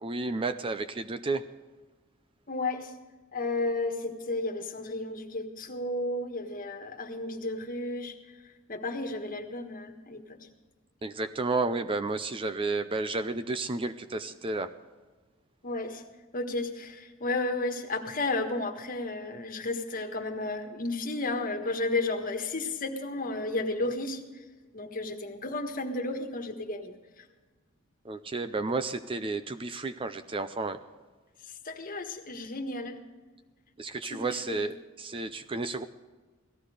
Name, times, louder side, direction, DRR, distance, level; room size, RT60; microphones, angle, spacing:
voice 1, 0.0-1.4 11.0-14.7 28.0-30.8 33.8-35.8, right 3 dB, 25° right, 11 dB, 0.5 m, -32 dB
voice 2, 2.5-2.9 3.3-8.2 8.7-10.4 15.6-16.0 16.3-24.4 24.7-27.2 31.4-33.0 34.0-34.6, left 2 dB, 40° left, 4 dB, 1.5 m, -33 dB
17.5 x 14.0 x 5.0 m, 1.3 s
head